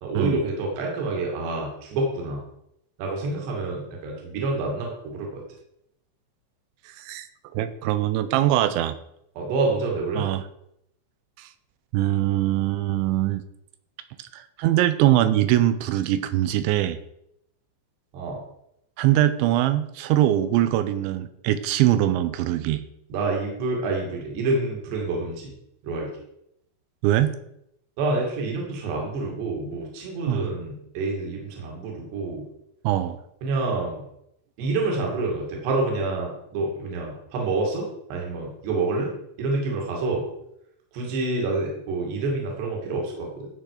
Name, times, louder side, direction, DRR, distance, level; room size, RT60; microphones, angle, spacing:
voice 1, 0.0-2.4 3.0-5.4 9.4-10.2 18.1-18.4 23.1-25.5 25.8-26.1 28.0-32.4 33.4-34.0 34.6-39.1 39.4-40.3 40.9-43.5, right 3 dB, 65° right, -1 dB, 4.4 m, -27 dB
voice 2, 7.0-7.3 7.5-9.0 10.2-10.4 11.4-11.5 11.9-13.4 14.2-17.0 19.0-22.8 27.0-27.4 30.3-30.5 32.8-33.2, right 13 dB, 80° right, 12 dB, 2.8 m, -22 dB
16.5 x 6.4 x 4.9 m, 0.78 s
omnidirectional pair, 5.6 m